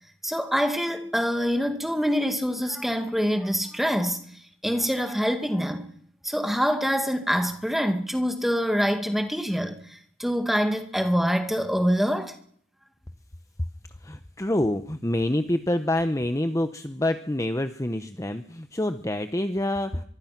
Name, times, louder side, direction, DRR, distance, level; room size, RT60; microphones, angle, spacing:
voice 1, 0.2-4.2 4.6-5.9 6.2-12.4, equal, ahead, 2.0 m, -25 dB
voice 2, 14.0-20.0, left 1 dB, 15° left, 0.9 m, -27 dB
23.5 x 23.5 x 6.0 m
head